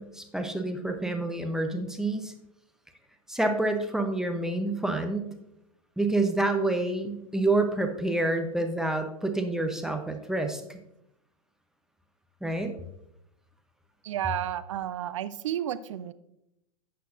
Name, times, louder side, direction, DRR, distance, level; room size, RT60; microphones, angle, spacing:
voice 1, 0.0-2.3 3.3-5.4 6.0-10.8 12.4-12.7, right 2 dB, 5° right, 4 dB, 0.7 m, -28 dB
voice 2, 14.0-16.1, right 11 dB, 55° right, 15 dB, 0.5 m, -32 dB
11.5 x 7.9 x 2.5 m, 0.82 s
figure-of-eight pair, 100°, 19 cm